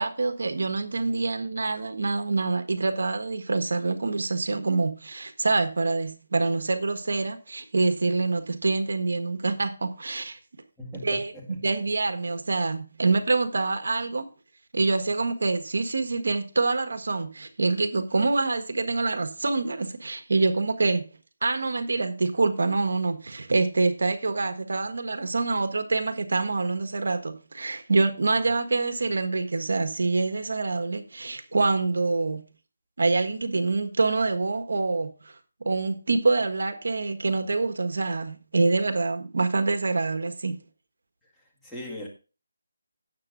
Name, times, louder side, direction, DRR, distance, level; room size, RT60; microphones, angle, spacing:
voice 1, 0.0-10.4 10.9-14.3 14.7-21.0 21.4-32.5 33.0-35.3 35.6-40.6, right 3 dB, 70° right, 1.5 m, -26 dB
voice 2, 10.8-11.4 41.6-42.1, left 1 dB, 5° left, 2.0 m, -38 dB
17.5 x 7.3 x 2.6 m
figure-of-eight pair, 165°, 0 cm